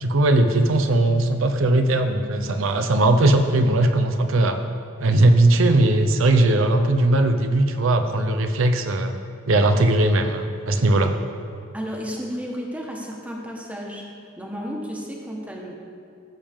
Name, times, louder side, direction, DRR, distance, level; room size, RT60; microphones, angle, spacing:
voice 1, 0.0-4.6 5.0-9.2 9.5-11.1, right 2 dB, 80° right, 6 dB, 0.6 m, -19 dB
voice 2, 11.7-14.0 14.4-15.7, equal, 5° right, -1 dB, 1.2 m, -32 dB
15.0 x 7.2 x 3.6 m, 2.3 s
head